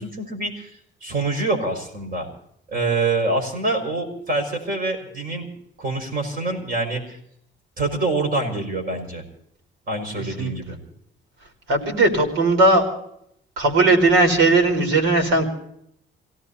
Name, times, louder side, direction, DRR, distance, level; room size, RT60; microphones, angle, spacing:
voice 1, 0.0-2.3 2.7-5.5 5.8-7.2 7.8-9.2 9.9-10.8, right 2 dB, 45° right, 4 dB, 5.9 m, -25 dB
voice 2, 11.7-12.8 13.6-15.5, right 2 dB, 85° right, 4 dB, 4.5 m, -17 dB
29.0 x 17.5 x 2.8 m, 0.73 s
cardioid pair, 90°, 20 cm